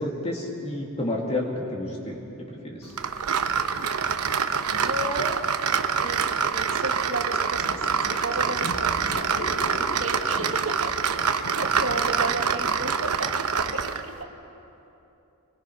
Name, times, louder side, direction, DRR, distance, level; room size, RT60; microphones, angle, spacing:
voice 1, 0.0-2.2 2.5-3.0 9.4-9.5 9.9-10.0 10.3-10.4, left 1 dB, 30° left, -1 dB, 2.2 m, -30 dB
sound 1, 3.0-14.1, right 6 dB, 80° right, 0.9 m, -26 dB
voice 2, 4.7-5.4 6.0-9.2 9.8-10.9 11.5-14.1, right 2 dB, 65° right, 4 dB, 1.7 m, -33 dB
sound 2, 7.6-10.7 11.3-12.7, left 1 dB, 70° left, 3.9 m, -38 dB
24.5 x 21.5 x 5.6 m, 2.9 s
head